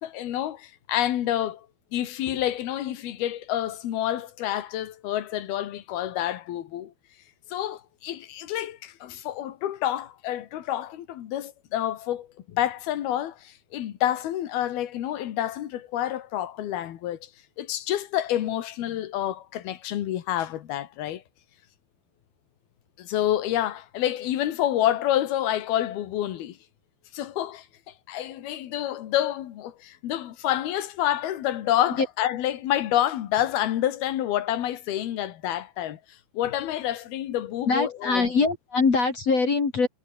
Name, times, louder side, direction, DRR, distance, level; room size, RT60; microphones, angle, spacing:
voice 1, 0.0-1.7 1.9-6.9 7.5-17.3 17.6-21.2 23.0-26.6 27.1-27.7 28.1-36.0 36.3-38.3, left 12 dB, 65° left, 3.4 m, -28 dB
voice 2, 37.6-39.9, left 4 dB, 40° left, 3.7 m, -23 dB
omnidirectional pair, 5.3 m